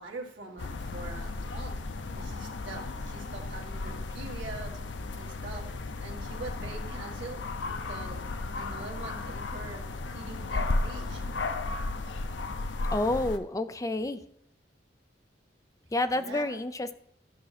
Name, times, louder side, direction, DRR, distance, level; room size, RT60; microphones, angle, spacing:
voice 1, 0.0-1.8 2.1-4.7 5.1-5.7 6.0-8.2 8.5-9.9 10.1-11.2 16.1-16.6, right 3 dB, 80° right, -1 dB, 1.8 m, -43 dB
sound 1, 0.6-13.4, left 3 dB, 85° left, 0.6 m, -34 dB
voice 2, 8.8-9.2 12.9-14.2 15.9-17.0, left 2 dB, 20° left, 11 dB, 0.5 m, -30 dB
13.0 x 6.1 x 4.2 m, 0.68 s
head